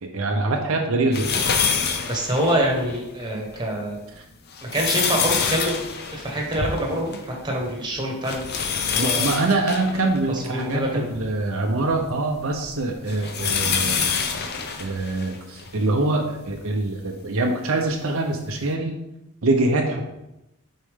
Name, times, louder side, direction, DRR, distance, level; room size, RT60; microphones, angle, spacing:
voice 1, 0.0-1.6 4.2-4.3 9.0-14.0 14.8-18.9 19.4-20.0, right 2 dB, 70° right, 2 dB, 0.7 m, -24 dB
sound 1, 1.1-3.0 3.5-3.6 4.3-7.3 7.6-7.7 8.2-11.3 11.9-15.8 16.5-16.6 17.9-18.0, left 6 dB, 50° left, 0.6 m, -26 dB
voice 2, 2.0-4.0 4.6-5.8 6.1-9.3 10.3-11.1 13.2-13.3, right 1 dB, 20° right, 0 dB, 1.3 m, -26 dB
6.4 x 4.5 x 3.6 m, 0.89 s
head